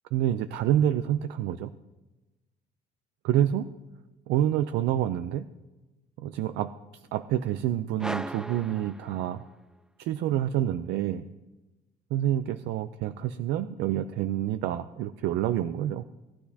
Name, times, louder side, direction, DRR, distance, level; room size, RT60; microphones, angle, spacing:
voice 1, 0.1-1.7 3.2-3.7 4.3-5.5 6.2-6.7 7.1-9.4 10.0-11.2 12.1-16.0, right 11 dB, 85° right, 11 dB, 0.5 m, -27 dB
sound 1, 8.0-9.8, right 1 dB, 5° right, 0.3 m, -38 dB
18.0 x 10.0 x 2.8 m, 1.1 s
cardioid pair, 110°, 17 cm